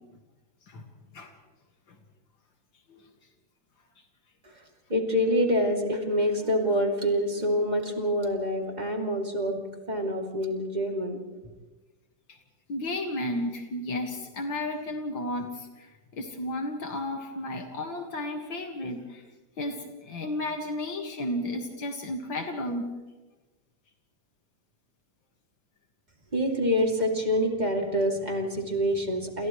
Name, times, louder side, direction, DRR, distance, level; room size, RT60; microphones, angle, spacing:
voice 1, 4.9-11.2 26.3-29.5, equal, 20° right, 1 dB, 2.9 m, -26 dB
voice 2, 12.7-19.2 19.6-22.9, left 1 dB, 80° left, 3 dB, 2.6 m, -33 dB
29.5 x 28.0 x 3.2 m, 1.2 s
omnidirectional pair, 2.1 m